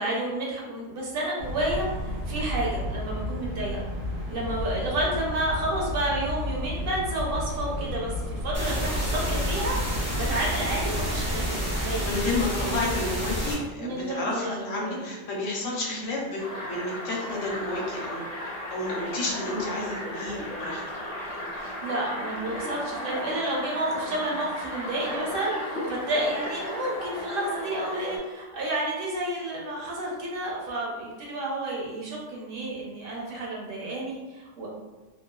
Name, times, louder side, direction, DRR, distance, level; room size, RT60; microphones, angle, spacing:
voice 1, 0.0-3.8 4.3-12.1 12.5-13.1 13.8-15.0 15.6-15.9 21.8-34.7, right 1 dB, 55° right, -3 dB, 0.7 m, -31 dB
sound 1, 1.4-11.4, left 1 dB, 85° right, 1.1 m, -33 dB
sound 2, 8.5-13.5, equal, 25° right, 0.3 m, -29 dB
voice 2, 12.0-18.2 18.7-20.8, left 2 dB, 75° left, -3 dB, 1.0 m, -31 dB
sound 3, 16.4-28.2, left 1 dB, 50° left, 0.8 m, -35 dB
2.9 x 2.2 x 2.2 m, 1.2 s
omnidirectional pair, 1.3 m